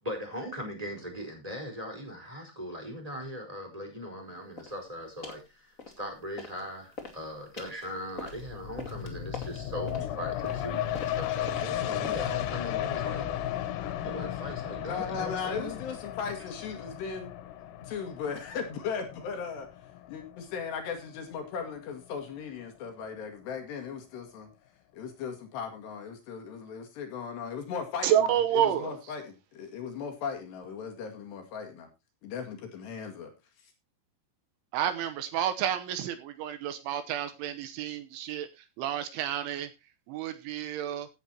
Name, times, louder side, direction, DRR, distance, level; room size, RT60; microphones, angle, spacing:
voice 1, 0.0-15.8, equal, 10° right, 4.1 m, -40 dB
sound 1, 4.6-4.8 5.2-5.5 5.8-6.6 6.9-12.5, left 3 dB, 35° left, 1.3 m, -44 dB
sound 2, 8.2-21.5 21.9-22.0, left 11 dB, 90° left, 3.9 m, -35 dB
voice 2, 14.8-17.3 17.8-19.7 20.1-24.5 24.9-28.4 28.8-31.9 32.2-33.3, left 6 dB, 60° left, 4.0 m, -37 dB
voice 3, 28.0-29.0 34.7-39.7 40.1-41.1, right 10 dB, 75° right, 3.3 m, -30 dB
16.5 x 9.1 x 2.9 m
omnidirectional pair, 5.8 m